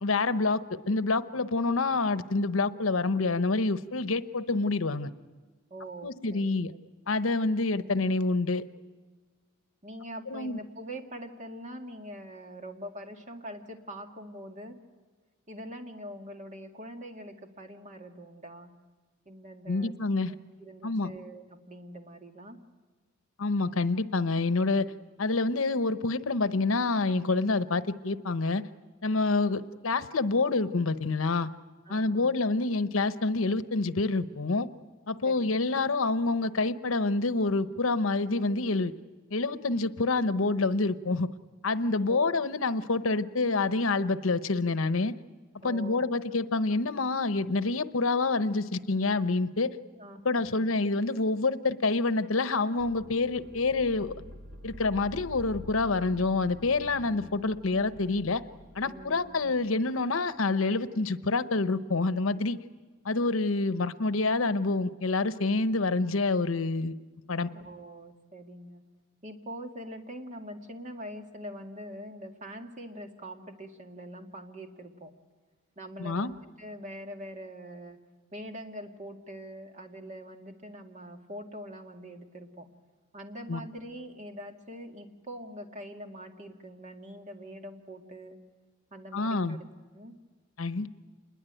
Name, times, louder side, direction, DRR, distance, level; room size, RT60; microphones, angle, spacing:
voice 1, 0.0-5.1 6.0-6.7 7.1-8.6 10.3-10.6 19.7-20.3 20.8-21.1 23.4-24.9 25.2-28.6 29.0-31.5 31.9-34.7 35.1-38.9 39.3-41.3 41.6-45.1 45.6-49.7 50.2-54.1 54.6-58.4 58.7-62.6 63.0-66.9 67.3-67.5 76.0-76.3 83.5-83.6 89.1-89.6 90.6-90.9, left 3 dB, 80° left, 13 dB, 1.0 m, -27 dB
voice 2, 5.7-6.6 9.8-14.8 15.5-18.7 19.3-19.9 20.3-22.6 31.9-32.3 35.2-35.6 42.1-42.4 45.6-46.2 50.0-50.7 58.8-59.5 67.5-68.8 69.2-75.1 75.8-78.0 78.3-82.7 83.1-88.4 88.9-89.7 89.9-90.1, equal, 35° right, 4 dB, 2.2 m, -43 dB
sound 1, 52.8-62.0 62.4-62.5, left 1 dB, 65° right, 2.3 m, -48 dB
27.5 x 21.5 x 9.1 m, 1.4 s
head